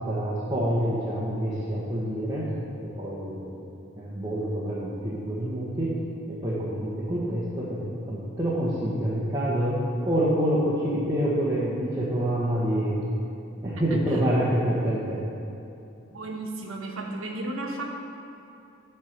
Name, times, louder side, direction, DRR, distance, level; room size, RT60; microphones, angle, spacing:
voice 1, 0.0-2.5 2.8-3.6 4.0-6.0 6.3-12.9 13.6-15.2, right 1 dB, 15° right, -10 dB, 1.3 m, -27 dB
voice 2, 16.1-17.8, right 2 dB, 85° right, 1 dB, 1.3 m, -34 dB
11.5 x 4.6 x 6.6 m, 2.7 s
head